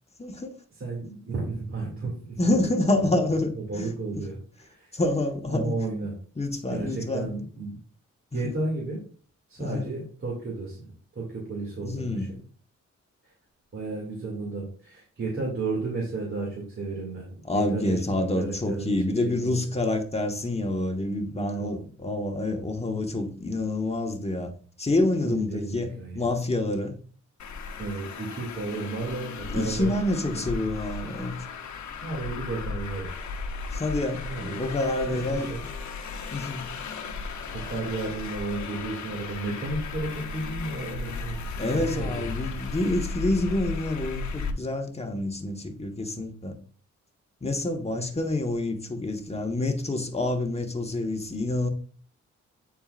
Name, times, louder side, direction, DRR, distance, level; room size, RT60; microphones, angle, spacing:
voice 1, 0.2-0.6 2.4-3.5 3.8-4.2 4.9-5.8 6.4-7.3 8.4-8.5 9.6-9.9 11.8-12.3 17.4-24.5 24.8-27.0 29.5-31.3 33.7-35.5 36.3-36.7 41.6-46.5 47.4-51.7, left 2 dB, 20° left, 1.3 m, -27 dB
voice 2, 0.7-2.7 3.0-3.2 3.5-5.0 5.5-6.2 6.7-7.8 8.3-9.0 9.5-12.3 13.2-13.3 13.7-18.0 18.3-19.6 21.3-21.9 25.2-26.3 27.8-30.0 30.3-30.4 32.0-33.1 34.3-34.7 35.0-35.7 37.5-42.5, right 3 dB, 45° right, 2.4 m, -33 dB
Traffic noise roadway noise, 27.4-44.5, left 4 dB, 75° left, 1.0 m, -35 dB
8.9 x 4.6 x 2.5 m
cardioid pair, 75°, 29 cm